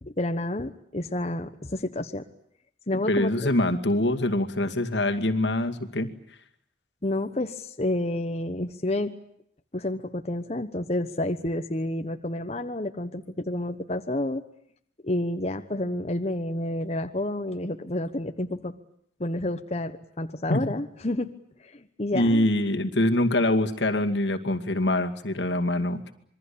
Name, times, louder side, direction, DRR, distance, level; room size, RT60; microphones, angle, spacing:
voice 1, 0.0-2.2 2.9-3.5 7.0-9.1 9.7-14.4 15.0-18.7 19.2-21.3 21.6-22.5, left 1 dB, 35° left, 7 dB, 1.2 m, -30 dB
voice 2, 2.9-6.1 20.5-20.6 22.1-26.1, left 1 dB, 80° left, 6 dB, 2.3 m, -24 dB
26.5 x 22.5 x 8.6 m, 0.68 s
head